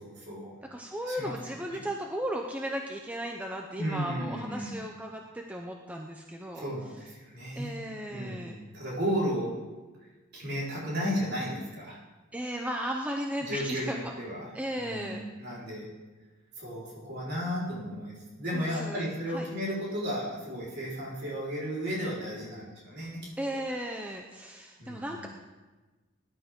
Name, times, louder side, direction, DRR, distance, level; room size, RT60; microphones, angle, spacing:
voice 1, 0.0-0.6 1.1-1.8 3.8-4.7 6.5-9.5 10.3-12.0 13.4-15.9 16.6-23.6 24.8-25.3, equal, 50° right, -6 dB, 4.3 m, -34 dB
voice 2, 0.7-6.7 7.5-8.6 12.3-14.1 14.5-15.2 18.5-19.0 19.3-19.4 23.4-25.3, equal, 5° right, 2 dB, 0.6 m, -35 dB
17.5 x 11.5 x 3.7 m, 1.2 s
head